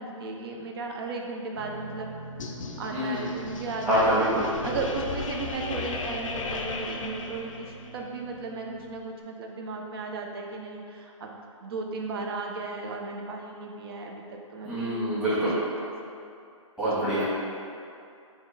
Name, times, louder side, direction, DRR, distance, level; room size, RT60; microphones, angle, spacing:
voice 1, 0.0-2.1 2.8-4.3 4.6-16.2 17.0-17.2, right 3 dB, 50° right, 1 dB, 0.5 m, -36 dB
sound 1, 1.5-9.0, right 3 dB, 80° right, 0.7 m, -44 dB
sound 2, 2.4-8.0, left 4 dB, 80° left, 0.4 m, -36 dB
voice 2, 3.9-4.8 14.6-15.5 16.8-17.2, equal, 5° right, -15 dB, 1.3 m, -25 dB
3.6 x 2.4 x 3.9 m, 2.5 s
hypercardioid pair, 135°, 17 cm